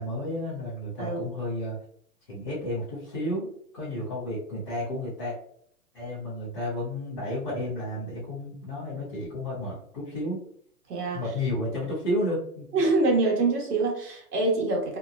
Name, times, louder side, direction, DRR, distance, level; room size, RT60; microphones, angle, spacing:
voice 1, 0.0-1.8 2.3-5.4 5.9-10.4 11.1-12.7, left 1 dB, 20° left, -12 dB, 0.5 m, -32 dB
voice 2, 10.9-11.2 12.7-15.0, right 3 dB, 85° right, 1 dB, 1.1 m, -25 dB
2.8 x 2.1 x 2.4 m, 0.65 s
hypercardioid pair, 165°, 46 cm